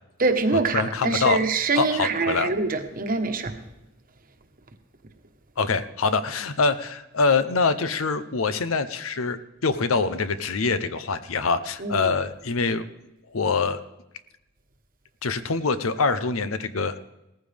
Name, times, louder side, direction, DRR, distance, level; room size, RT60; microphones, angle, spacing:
voice 1, 0.2-3.5 11.8-12.1, right 3 dB, 45° right, 6 dB, 1.2 m, -24 dB
voice 2, 0.7-1.4 1.7-2.5 5.6-12.8 13.3-13.8 15.2-17.0, left 4 dB, 85° left, 12 dB, 0.8 m, -24 dB
17.5 x 14.5 x 3.5 m, 0.95 s
head